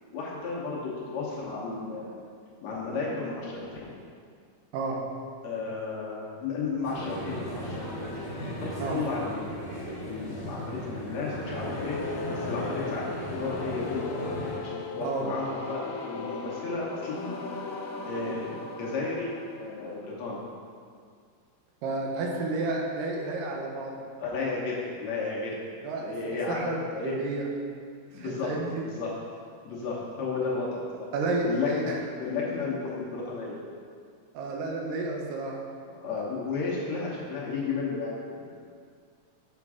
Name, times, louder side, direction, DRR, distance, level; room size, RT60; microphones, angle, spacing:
voice 1, 0.1-2.2 2.6-3.7 5.4-9.6 10.0-12.0 12.3-14.2 14.6-17.4 18.1-20.4 24.2-25.6 26.0-26.7 26.9-27.2 28.1-28.5 28.8-29.1 29.7-30.8 31.3-31.9 32.2-33.6 35.9-38.6, left 4 dB, 65° left, -5 dB, 2.1 m, -33 dB
sound 1, 6.8-14.6, equal, 25° left, 0.5 m, -37 dB
sound 2, 11.3-20.2, left 4 dB, 85° left, 2.3 m, -38 dB
voice 2, 21.8-24.0 25.8-26.8 27.0-27.5 28.1-28.7 31.1-32.0 34.3-35.6, right 2 dB, 90° right, 0 dB, 2.6 m, -31 dB
7.0 x 5.2 x 4.8 m, 2.1 s
omnidirectional pair, 3.7 m